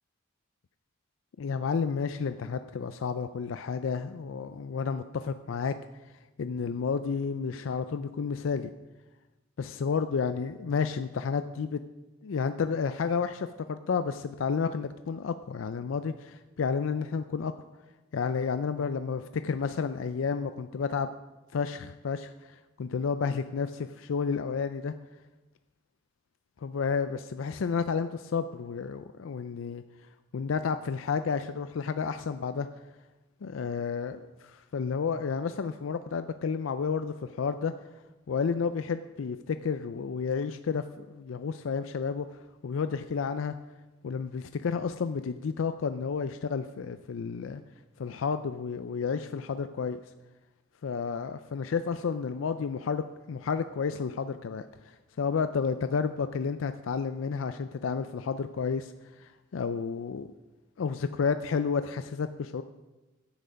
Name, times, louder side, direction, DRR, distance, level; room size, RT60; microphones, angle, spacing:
voice 1, 1.4-5.8 6.4-8.7 9.6-11.8 12.2-17.5 18.1-21.1 21.5-24.9 26.6-29.8 30.3-32.7 33.4-37.7 38.3-43.5 44.0-47.6 48.0-50.0 50.8-58.9 59.2-60.3 60.8-62.6, left 5 dB, 80° left, 10 dB, 0.4 m, -31 dB
10.0 x 9.1 x 5.2 m, 1.1 s
head